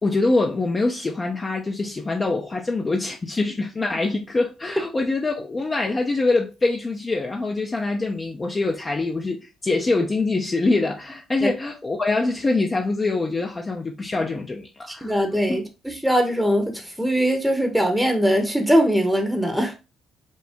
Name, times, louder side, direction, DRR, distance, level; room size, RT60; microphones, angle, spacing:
voice 1, 0.0-15.1 15.5-15.6, left 3 dB, 30° left, 0.6 m, -24 dB
voice 2, 14.9-19.8, equal, ahead, 0.9 m, -21 dB
5.3 x 2.1 x 3.5 m
cardioid pair, 90°, 0 cm